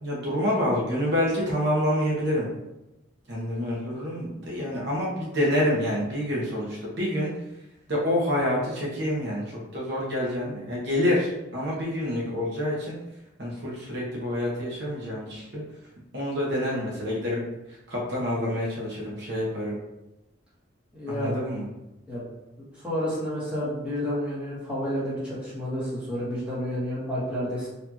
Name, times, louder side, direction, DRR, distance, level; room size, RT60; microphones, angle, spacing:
voice 1, 0.0-2.5 3.3-7.3 7.9-13.0 13.4-15.6 16.1-17.4 17.7-19.8 21.1-21.7, left 1 dB, 55° right, -5 dB, 1.0 m, -27 dB
voice 2, 20.9-21.4 22.1-22.2 22.8-27.7, equal, 5° right, -10 dB, 1.3 m, -30 dB
4.4 x 2.6 x 2.9 m, 0.96 s
head